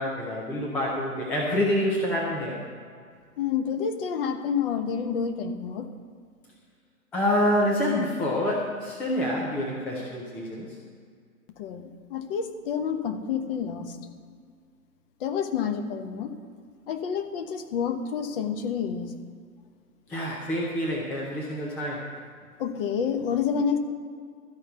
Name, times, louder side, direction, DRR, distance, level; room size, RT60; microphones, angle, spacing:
voice 1, 0.0-2.6 7.1-10.8 20.1-22.1, left 1 dB, 5° left, -3 dB, 0.4 m, -27 dB
voice 2, 3.4-5.9 11.6-14.0 15.2-16.4 16.9-19.2 22.6-23.8, left 7 dB, 40° left, 6 dB, 1.2 m, -29 dB
13.0 x 5.4 x 9.1 m, 2.1 s
figure-of-eight pair, 120°, 46 cm